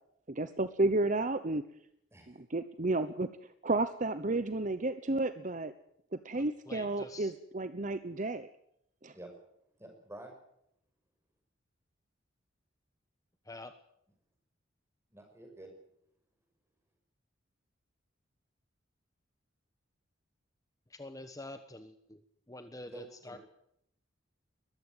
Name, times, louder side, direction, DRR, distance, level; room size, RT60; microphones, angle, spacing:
voice 1, 0.3-1.6 2.3-5.7 6.2-8.5 9.0-9.1, right 2 dB, 40° right, 12 dB, 0.9 m, -32 dB
voice 2, 6.3-7.3 13.5-13.7 20.9-22.2 22.5-23.4, left 2 dB, 15° left, 8 dB, 1.2 m, -47 dB
voice 3, 9.8-10.4 15.1-15.7 22.8-23.4, right 1 dB, 15° right, 4 dB, 5.9 m, -49 dB
21.5 x 14.5 x 9.6 m, 0.76 s
head